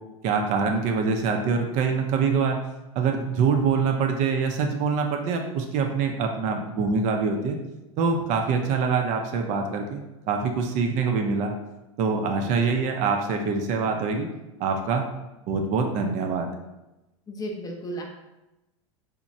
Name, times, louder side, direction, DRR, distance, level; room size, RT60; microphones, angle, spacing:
voice 1, 0.2-2.6 3.0-7.6 8.0-10.0 10.3-11.5 12.0-14.3 14.6-15.1 15.5-16.5, right 5 dB, 45° right, 3 dB, 0.4 m, -24 dB
voice 2, 17.3-18.0, right 1 dB, 20° left, 1 dB, 0.5 m, -33 dB
2.9 x 2.1 x 2.5 m, 0.98 s
hypercardioid pair, 100°, 17 cm